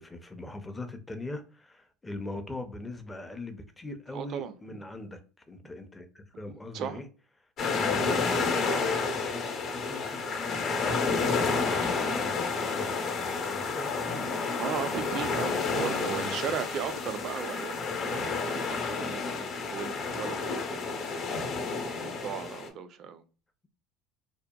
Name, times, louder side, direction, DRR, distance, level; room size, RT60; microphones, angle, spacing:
voice 1, 0.0-5.2 5.5-7.1 7.7-14.4 15.7-16.4, left 2 dB, 15° left, 0.4 m, -41 dB
voice 2, 4.1-4.5 6.7-7.0 14.6-21.3 22.0-23.2, right 7 dB, 55° right, 0.3 m, -36 dB
sound 1, 7.6-22.7, left 4 dB, 55° left, 0.7 m, -30 dB
2.7 x 2.1 x 2.2 m
supercardioid pair, 100°, 0 cm